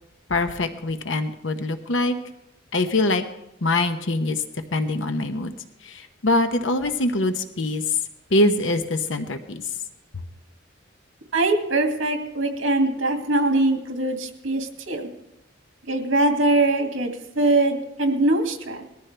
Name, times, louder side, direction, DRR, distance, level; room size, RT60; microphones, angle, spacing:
voice 1, 0.3-2.2 2.7-3.2 3.6-4.4 4.7-5.5 5.8-8.0 8.3-9.6, left 2 dB, 70° left, 7 dB, 1.0 m, -23 dB
voice 2, 11.3-15.1 15.9-18.8, right 2 dB, 80° right, 3 dB, 2.3 m, -22 dB
20.5 x 14.0 x 3.4 m, 0.86 s
head